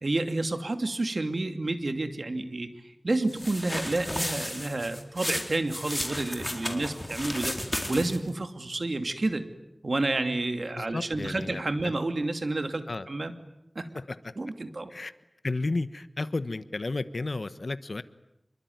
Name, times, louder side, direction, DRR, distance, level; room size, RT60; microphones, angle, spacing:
voice 1, 0.0-2.7 3.0-9.4 9.8-13.3 13.7-13.9 14.4-14.9, right 2 dB, 70° right, 8 dB, 2.6 m, -30 dB
sound 1, 3.3-8.3, left 1 dB, 15° left, 4.2 m, -34 dB
voice 2, 6.6-7.0 10.7-11.9 12.9-13.1 13.9-14.3 14.9-15.1 15.4-18.0, left 3 dB, 75° left, 13 dB, 1.2 m, -33 dB
26.5 x 23.5 x 9.5 m, 0.84 s
wide cardioid pair, 60°, 0 cm